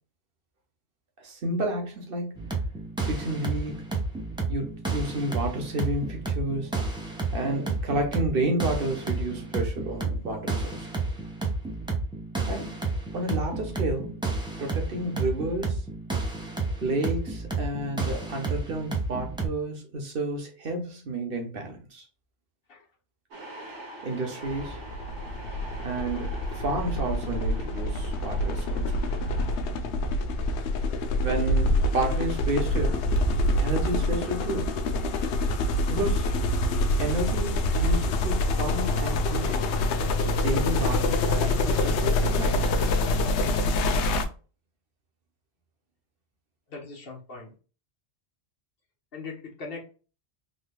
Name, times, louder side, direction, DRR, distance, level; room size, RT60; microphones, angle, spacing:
voice 1, 1.2-2.5 3.0-3.8 4.5-6.7 7.3-10.9 12.5-12.8 13.1-14.2 14.6-15.9 16.8-22.0 24.0-24.8 25.8-29.2 31.2-33.0 33.6-34.8 35.9-36.3 37.0-39.7 40.2-42.9, right 2 dB, 55° right, 1.2 m, -31 dB
sound 1, 2.4-19.5, right 3 dB, 5° right, 0.6 m, -31 dB
sound 2, 23.3-29.6, right 1 dB, 75° right, 1.4 m, -44 dB
sound 3, 24.5-44.2, left 1 dB, 75° left, 0.8 m, -26 dB
voice 2, 46.7-47.5 49.1-49.8, left 4 dB, 55° left, 1.2 m, -40 dB
3.8 x 3.1 x 2.2 m
omnidirectional pair, 1.2 m